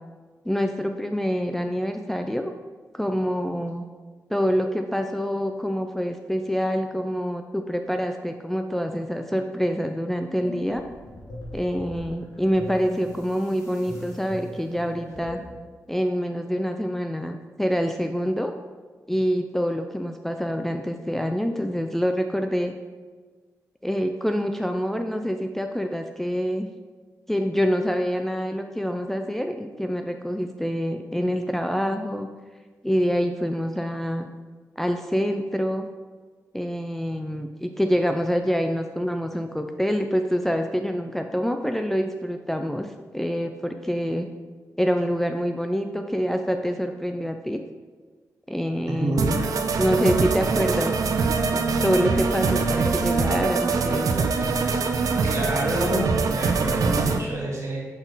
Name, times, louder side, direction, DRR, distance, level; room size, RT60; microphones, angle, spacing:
voice 1, 0.5-2.5 2.9-3.8 4.3-10.8 11.5-15.4 15.9-18.5 19.1-22.7 23.8-26.7 27.3-32.3 32.8-34.3 34.8-35.9 36.5-44.3 44.8-47.6 48.5-49.4 49.8-50.9 51.5-54.3, equal, 5° left, 5 dB, 0.3 m, -26 dB
sound 1, 10.4-15.6, left 1 dB, 55° left, 1.5 m, -39 dB
voice 2, 48.9-49.3 55.1-57.8, right 1 dB, 55° right, -3 dB, 1.7 m, -28 dB
sound 2, 49.2-57.2, right 4 dB, 75° right, 0.4 m, -23 dB
6.0 x 4.0 x 3.9 m, 1.4 s
cardioid pair, 70°, 6 cm